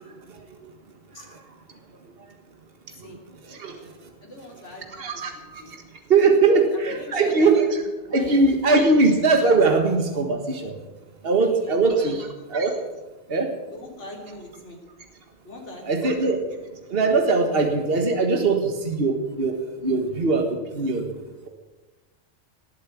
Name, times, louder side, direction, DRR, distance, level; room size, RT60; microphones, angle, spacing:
voice 1, 4.2-5.3 5.6-5.7 6.5-6.6 6.9-7.5 8.1-8.4 11.3-12.2 13.7-14.8 15.4-16.0, left 1 dB, 80° left, 0 dB, 3.7 m, -41 dB
voice 2, 5.0-5.3 6.1-7.7 8.1-10.7 11.2-12.8 13.3-13.5 15.9-16.4 16.9-19.6 19.8-20.4 20.7-21.0, right 3 dB, 55° right, 4 dB, 1.8 m, -20 dB
19.0 x 8.6 x 8.5 m, 1.2 s
omnidirectional pair, 1.2 m